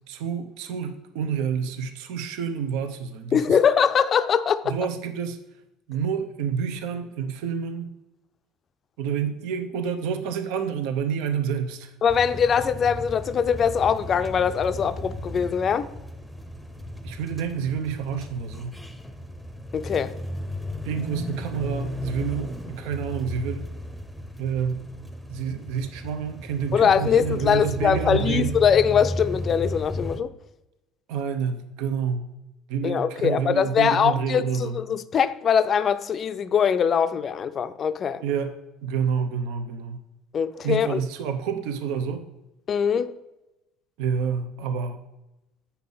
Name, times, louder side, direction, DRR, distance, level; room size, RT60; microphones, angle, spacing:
voice 1, 0.1-3.6 4.6-5.4 5.9-7.9 9.0-11.9 17.0-18.8 20.8-23.7 24.4-24.9 25.3-28.5 31.1-32.3 32.7-34.8 38.2-38.6 38.8-40.0 40.6-42.3 44.0-45.0, right 7 dB, 80° right, 0.8 m, -28 dB
voice 2, 3.3-4.7 12.0-15.9 19.7-20.1 26.7-30.3 32.8-38.2 40.3-41.0 42.7-43.1, left 7 dB, 35° left, 0.4 m, -22 dB
sound 1, 12.1-30.2, left 1 dB, ahead, 0.7 m, -35 dB
8.3 x 5.7 x 4.0 m
cardioid pair, 130°, 0 cm